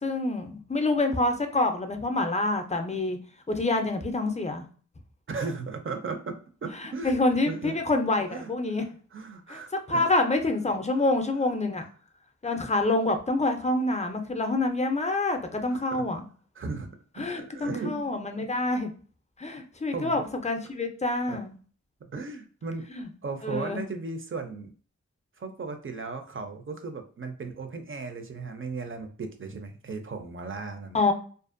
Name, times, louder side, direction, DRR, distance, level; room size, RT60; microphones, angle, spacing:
voice 1, 0.0-3.2 3.5-4.6 6.8-8.8 9.5-9.6 9.9-11.9 12.4-16.2 17.2-18.9 19.4-21.5 23.0-23.1 23.4-23.9 30.9-31.1, left 2 dB, 25° left, 5 dB, 0.4 m, -27 dB
voice 2, 5.3-7.2 7.5-7.8 8.3-8.5 9.1-10.1 12.4-12.6 15.7-16.1 16.6-16.9 17.2-18.1 19.9-20.2 21.3-21.4 22.0-22.9 23.2-24.7 25.4-31.0, right 4 dB, 40° right, 6 dB, 0.5 m, -36 dB
2.5 x 2.1 x 2.5 m, 0.43 s
wide cardioid pair, 65°, 31 cm